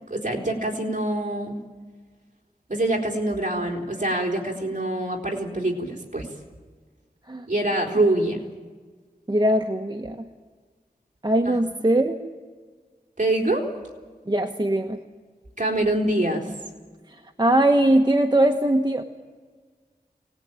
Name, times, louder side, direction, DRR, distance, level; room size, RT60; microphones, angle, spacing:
voice 1, 0.1-1.6 2.7-6.3 7.5-8.4 11.5-11.6 13.2-13.7 15.6-16.5, right 1 dB, 50° right, 1 dB, 4.1 m, -25 dB
voice 2, 9.3-10.3 11.2-12.2 14.3-15.0 17.4-19.0, right 1 dB, 25° right, 5 dB, 1.2 m, -21 dB
24.0 x 19.0 x 9.0 m, 1.5 s
wide cardioid pair, 65°, 16 cm